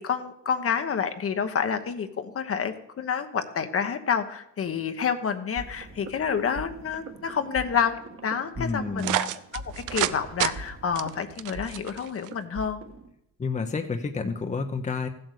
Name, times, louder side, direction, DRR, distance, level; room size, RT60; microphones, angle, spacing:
voice 1, 0.0-12.8, left 7 dB, 50° left, 8 dB, 1.2 m, -29 dB
sound 1, 5.6-13.1, right 2 dB, 45° right, 1.6 m, -43 dB
voice 2, 8.6-9.2 13.4-15.1, left 4 dB, 25° left, 6 dB, 0.9 m, -29 dB
sound 2, 9.0-10.1 10.4-10.5 11.0-12.3, right 14 dB, 90° right, 0.6 m, -28 dB
14.5 x 7.9 x 6.7 m, 0.80 s
cardioid pair, 90°, 30 cm